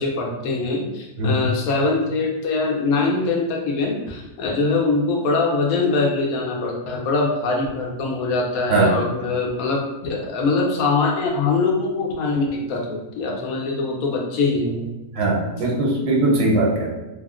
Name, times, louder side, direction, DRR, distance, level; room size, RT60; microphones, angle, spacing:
voice 1, 0.0-14.9, left 3 dB, 70° left, 0 dB, 1.0 m, -23 dB
voice 2, 1.2-1.5 8.7-8.9 15.1-16.9, right 2 dB, 90° right, -2 dB, 1.2 m, -20 dB
3.4 x 2.1 x 2.3 m, 1.1 s
omnidirectional pair, 1.6 m